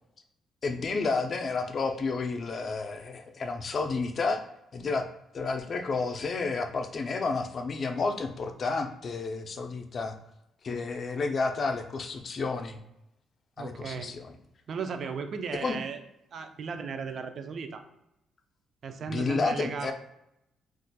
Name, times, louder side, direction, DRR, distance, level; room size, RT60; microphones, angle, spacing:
voice 1, 0.6-4.5 4.7-5.1 5.3-10.2 10.6-12.8 13.6-14.4 15.6-15.8 19.1-19.9, left 4 dB, 45° left, 6 dB, 0.4 m, -31 dB
voice 2, 13.6-14.1 14.7-16.0 16.3-17.8 18.8-19.9, right 5 dB, 55° right, 7 dB, 0.4 m, -36 dB
3.9 x 2.4 x 2.2 m, 0.83 s
cardioid pair, 90°, 0 cm